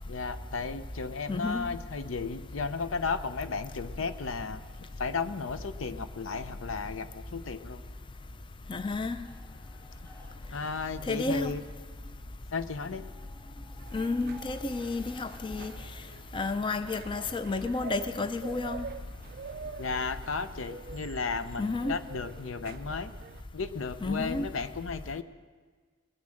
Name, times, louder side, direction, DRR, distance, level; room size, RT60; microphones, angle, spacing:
voice 1, 0.1-4.6 5.0-7.8 10.5-11.6 12.5-13.0 19.8-23.1 23.5-25.2, left 4 dB, 80° left, 0.6 m, -34 dB
voice 2, 1.3-1.7 8.7-9.2 11.1-11.5 13.9-15.7 16.3-18.8 21.6-22.0 24.0-24.5, left 3 dB, 25° left, 0.4 m, -31 dB
sound 1, 9.2-18.3, right 1 dB, 10° left, 2.1 m, -55 dB
sound 2, 13.8-23.4, right 5 dB, 50° right, 0.3 m, -46 dB
20.5 x 7.2 x 6.5 m
head